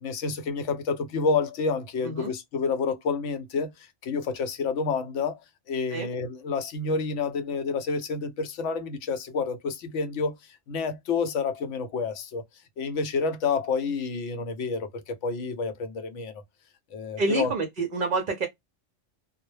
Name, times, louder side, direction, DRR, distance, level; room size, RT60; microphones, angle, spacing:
voice 1, 0.0-5.4 5.7-10.4 10.7-12.4 12.8-16.3 16.9-17.5, left 4 dB, 75° left, 0.9 m, -29 dB
voice 2, 17.2-18.5, right 3 dB, 55° right, 0.6 m, -27 dB
2.2 x 2.0 x 3.0 m
omnidirectional pair, 1.3 m